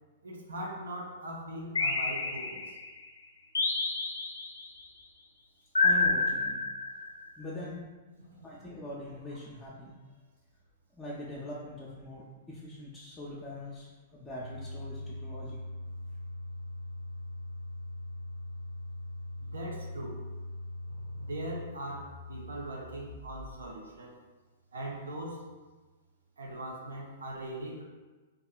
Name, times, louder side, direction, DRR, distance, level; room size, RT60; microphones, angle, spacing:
voice 1, 0.2-2.8 8.3-8.5 9.3-9.4 19.4-20.2 21.2-24.2 24.7-25.5 26.4-27.8, right 1 dB, 85° right, -1 dB, 0.6 m, -40 dB
sound 1, 1.8-2.9 3.6-4.7 5.8-7.2, left 3 dB, 85° left, 0.3 m, -28 dB
voice 2, 5.8-6.6 7.4-7.9 8.4-9.9 10.9-15.6, left 2 dB, 20° left, -7 dB, 0.4 m, -42 dB
sound 2, 14.4-23.6, left 1 dB, 45° right, 0.7 m, -41 dB
2.7 x 2.4 x 2.3 m, 1.3 s
hypercardioid pair, 115°, 0 cm